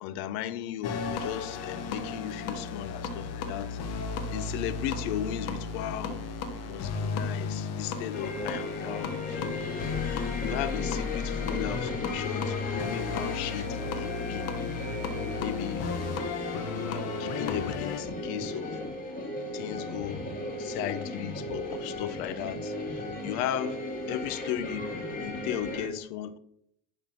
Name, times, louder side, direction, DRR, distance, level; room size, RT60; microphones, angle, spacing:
voice 1, 0.0-3.8 4.3-6.2 6.6-9.6 10.4-14.5 15.4-16.3 16.7-18.8 19.5-20.3 20.6-23.8 24.1-24.9 25.2-26.4, left 11 dB, 70° left, 0.8 m, -36 dB
sound 1, 0.8-18.0, left 5 dB, 50° left, 1.4 m, -34 dB
sound 2, 8.1-25.9, left 2 dB, 25° left, 2.3 m, -36 dB
11.0 x 4.1 x 5.8 m
supercardioid pair, 120°, 33 cm